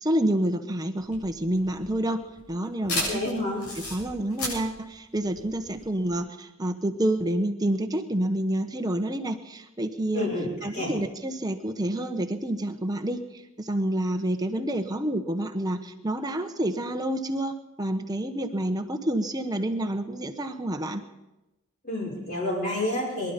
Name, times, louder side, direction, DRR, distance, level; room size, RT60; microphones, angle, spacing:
voice 1, 0.0-2.2 2.5-3.4 3.8-10.3 10.6-13.2 13.6-21.0, right 1 dB, 20° right, 6 dB, 1.1 m, -28 dB
sound 1, 1.0-6.1, left 2 dB, 90° left, 7.8 m, -34 dB
voice 2, 3.1-3.6 10.1-10.9 21.8-23.3, left 1 dB, 45° left, -9 dB, 5.7 m, -29 dB
23.5 x 11.5 x 5.3 m, 1.0 s
head